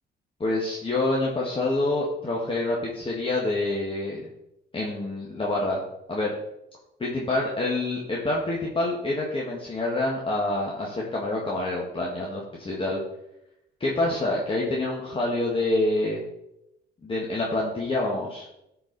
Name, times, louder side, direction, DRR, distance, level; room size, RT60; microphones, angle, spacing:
voice 1, 0.4-4.3 4.7-5.8 6.1-6.3 7.0-13.0 13.8-16.2 17.0-18.4, left 2 dB, 25° left, -4 dB, 1.6 m, -27 dB
10.5 x 4.8 x 4.0 m, 0.84 s
cardioid pair, 90°, 20 cm